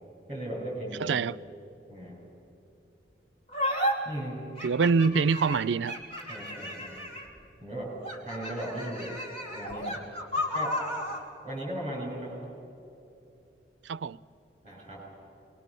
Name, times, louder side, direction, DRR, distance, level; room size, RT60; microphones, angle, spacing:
voice 1, 0.3-1.1 1.9-2.2 4.0-4.4 6.3-7.0 7.6-7.9 8.2-9.2 9.5-10.0 10.5-10.8 11.4-12.3 14.6-15.0, right 1 dB, 25° right, 7.5 m, -37 dB
voice 2, 1.0-1.4 4.6-6.0 13.8-14.2, right 5 dB, 90° right, 0.4 m, -25 dB
sound 1, 3.5-3.9 4.6-7.4 8.0-11.2, equal, 35° left, 3.1 m, -33 dB
26.5 x 21.0 x 6.9 m
head